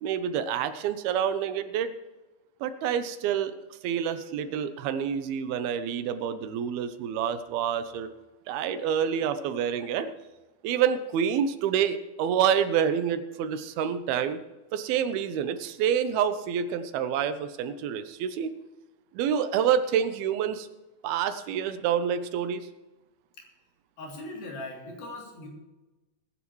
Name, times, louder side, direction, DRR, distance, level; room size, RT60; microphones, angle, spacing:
voice 1, 0.0-1.9 2.6-8.1 8.5-10.1 10.6-14.4 14.7-18.5 19.1-20.7 21.0-22.7, right 8 dB, 85° right, 10 dB, 2.8 m, -27 dB
voice 2, 24.0-25.5, left 2 dB, 70° left, -1 dB, 4.9 m, -39 dB
21.0 x 10.5 x 3.2 m, 1.1 s
omnidirectional pair, 4.3 m